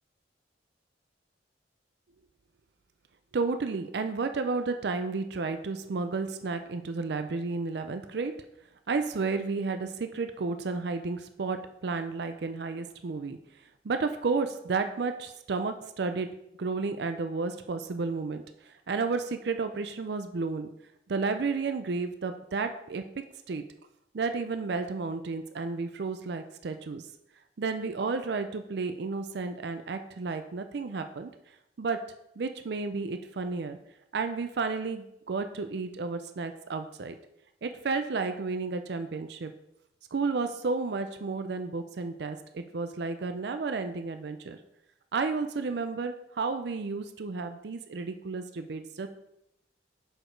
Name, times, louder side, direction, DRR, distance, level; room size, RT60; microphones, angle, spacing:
voice 1, 3.3-8.3 8.9-13.4 13.8-16.3 16.6-18.4 18.9-20.7 21.1-23.0 23.5-23.6 24.1-27.0 27.6-31.3 31.8-32.0 32.4-33.8 34.1-37.2 37.6-39.5 40.1-44.6 45.1-49.1, right 4 dB, 60° right, 8 dB, 0.4 m, -32 dB
6.4 x 4.9 x 4.5 m, 0.81 s
head